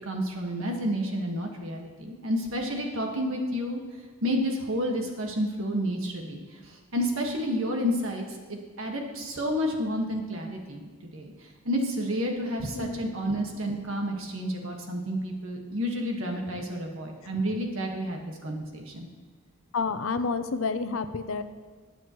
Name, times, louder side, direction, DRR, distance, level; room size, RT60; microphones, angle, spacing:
voice 1, 0.0-3.8 4.2-6.4 6.7-8.2 8.8-11.3 11.7-19.1, equal, 70° right, 1 dB, 1.7 m, -30 dB
voice 2, 12.7-13.1 19.7-21.4, left 4 dB, 70° left, 11 dB, 0.6 m, -29 dB
20.0 x 7.7 x 3.1 m, 1.4 s
head